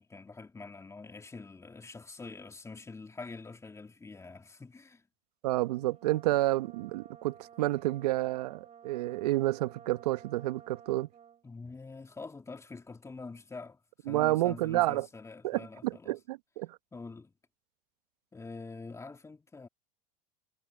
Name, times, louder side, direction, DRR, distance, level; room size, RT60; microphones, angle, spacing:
voice 1, 0.0-5.0 11.4-13.8 14.1-16.2 16.9-17.3 18.3-19.7, left 3 dB, 15° left, 2.7 m, -45 dB
voice 2, 5.4-11.1 14.1-15.1 15.4-16.8, right 17 dB, 75° right, 1.4 m, -30 dB
Brass instrument, 5.6-11.5, right 8 dB, 35° right, 4.0 m, -54 dB
hypercardioid pair, 95°, 20 cm